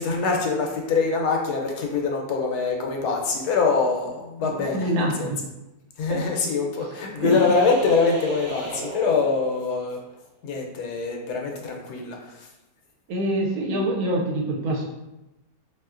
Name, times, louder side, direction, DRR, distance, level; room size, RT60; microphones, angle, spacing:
voice 1, 0.0-5.3 6.0-10.0 10.4-12.2, left 4 dB, 80° left, 1 dB, 1.1 m, -24 dB
voice 2, 4.7-5.4 6.1-6.2 7.2-7.4 13.1-14.8, right 1 dB, 75° right, 0 dB, 1.1 m, -25 dB
sound 1, 7.3-9.9, right 2 dB, 55° right, 0.9 m, -36 dB
3.4 x 2.7 x 2.4 m, 0.98 s
omnidirectional pair, 1.7 m